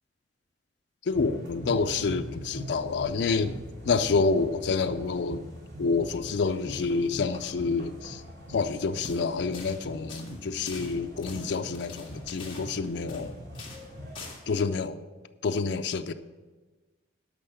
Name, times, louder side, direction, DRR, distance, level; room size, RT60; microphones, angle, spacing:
voice 1, 1.1-3.6 3.8-5.4 5.8-8.2 8.5-13.3 14.5-15.0 15.4-16.1, left 4 dB, 65° left, 8 dB, 0.4 m, -28 dB
sound 1, 1.1-14.3, equal, 70° right, 2.9 m, -42 dB
sound 2, 8.9-9.2 9.5-9.8 10.1-13.3 13.5-13.9 14.1-14.4, left 3 dB, 25° left, 2.0 m, -44 dB
12.0 x 5.5 x 5.7 m, 1.3 s
head